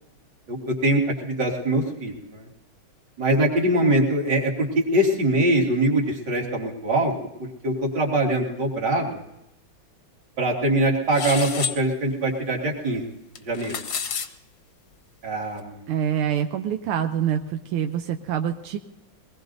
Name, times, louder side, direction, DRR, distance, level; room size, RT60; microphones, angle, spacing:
voice 1, 0.5-2.5 3.2-7.1 7.6-9.2 10.4-13.0 13.5-13.7 15.2-15.8, right 1 dB, 55° right, -1 dB, 2.9 m, -23 dB
sound 1, 11.1-11.8 13.3-14.3, left 6 dB, 55° left, 0.9 m, -29 dB
voice 2, 15.9-17.4 17.7-18.8, right 9 dB, 90° right, 5 dB, 1.6 m, -25 dB
23.0 x 19.5 x 2.7 m, 0.91 s
omnidirectional pair, 2.3 m